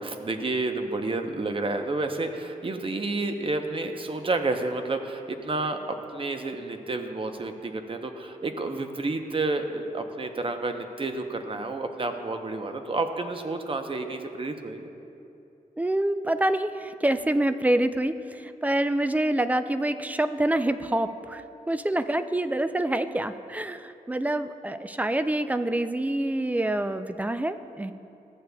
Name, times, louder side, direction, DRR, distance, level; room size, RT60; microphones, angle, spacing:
voice 1, 0.0-14.9, right 2 dB, 35° right, 6 dB, 0.7 m, -30 dB
voice 2, 15.8-27.9, right 1 dB, 10° right, 10 dB, 0.3 m, -26 dB
14.0 x 8.0 x 2.3 m, 2.7 s
wide cardioid pair, 80°, 15 cm